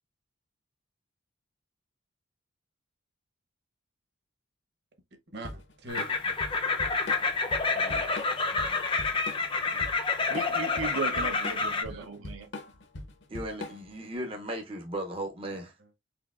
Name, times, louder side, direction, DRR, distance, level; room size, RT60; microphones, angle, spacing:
voice 1, 5.3-6.2 7.7-8.1 8.5-8.8 9.6-9.9 11.2-11.3 11.6-12.1 15.5-15.9, right 1 dB, 50° right, 1.0 m, -45 dB
Drum kit / Drum, 5.4-14.0, left 2 dB, 60° left, 0.7 m, -41 dB
sound 1, 5.9-11.8, left 4 dB, 25° left, 0.5 m, -28 dB
voice 2, 10.3-12.5, right 4 dB, 85° right, 0.7 m, -36 dB
voice 3, 13.3-15.7, right 1 dB, 25° right, 0.5 m, -36 dB
4.3 x 3.8 x 2.3 m
head